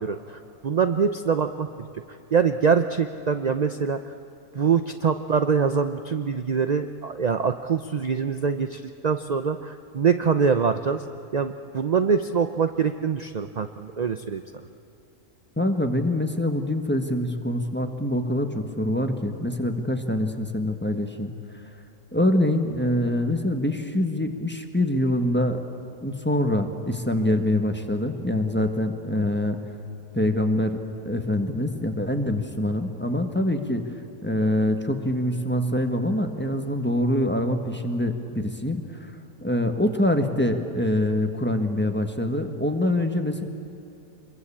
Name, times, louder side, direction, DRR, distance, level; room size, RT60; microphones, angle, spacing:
voice 1, 0.0-1.9 2.3-4.1 4.5-11.1 11.3-14.4, right 6 dB, 45° right, 9 dB, 0.5 m, -24 dB
voice 2, 15.6-21.3 22.1-25.6 26.0-29.6 30.1-30.8 31.0-33.8 34.2-38.8 39.4-43.4, left 1 dB, 5° left, 5 dB, 1.4 m, -24 dB
26.0 x 22.0 x 8.6 m, 2.9 s
omnidirectional pair, 1.6 m